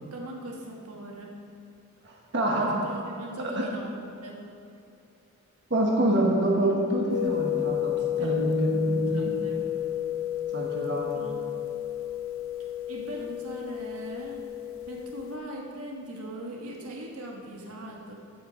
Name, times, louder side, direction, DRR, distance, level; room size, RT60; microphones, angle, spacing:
voice 1, 0.0-1.3 2.5-3.9 4.2-4.4 8.2-8.3 9.1-9.6 11.1-11.6 12.9-14.4 14.9-18.1, right 1 dB, 85° right, -1 dB, 1.5 m, -40 dB
voice 2, 2.0-2.7 3.4-3.6 5.7-9.3 10.5-11.1, right 1 dB, 50° right, -2 dB, 1.3 m, -26 dB
sound 1, 7.1-15.4, left 12 dB, 70° left, 0.5 m, -31 dB
15.5 x 6.0 x 5.0 m, 2.7 s
head